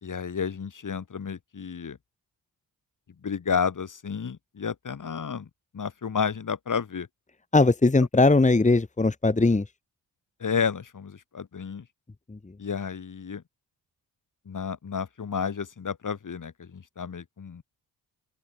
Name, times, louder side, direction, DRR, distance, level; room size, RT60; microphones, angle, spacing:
voice 1, 0.0-2.0 3.2-7.1 10.4-11.9 12.6-13.4 14.4-17.6, left 6 dB, 50° left, 3.0 m, -31 dB
voice 2, 7.5-9.6 12.3-12.4, left 3 dB, 20° left, 1.6 m, -20 dB
open air
cardioid pair, 60°, 40 cm